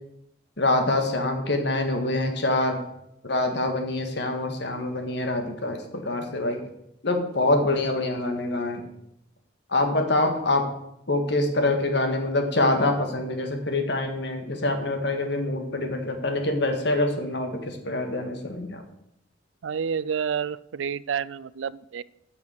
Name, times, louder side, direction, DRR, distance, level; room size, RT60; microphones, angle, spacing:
voice 1, 0.6-2.8 3.2-6.6 7.0-8.8 9.7-10.7 11.1-18.8, left 2 dB, 65° left, 5 dB, 1.8 m, -25 dB
voice 2, 19.6-22.0, right 7 dB, 80° right, 20 dB, 0.4 m, -29 dB
8.7 x 6.6 x 8.0 m, 0.80 s
head